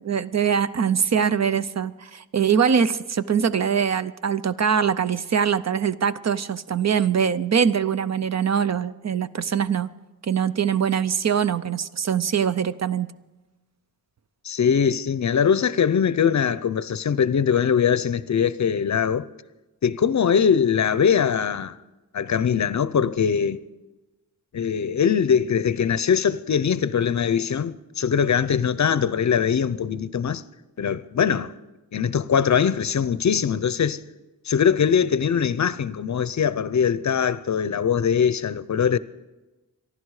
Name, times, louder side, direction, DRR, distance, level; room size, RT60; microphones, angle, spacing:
voice 1, 0.0-9.9 10.2-13.1, right 7 dB, 50° right, 0.6 m, -23 dB
voice 2, 14.4-19.3 19.8-21.8 22.1-23.6 24.5-30.4 30.8-31.5 31.9-34.0 34.5-39.0, left 7 dB, 55° left, 0.6 m, -22 dB
26.0 x 11.5 x 4.8 m
wide cardioid pair, 115°, 35 cm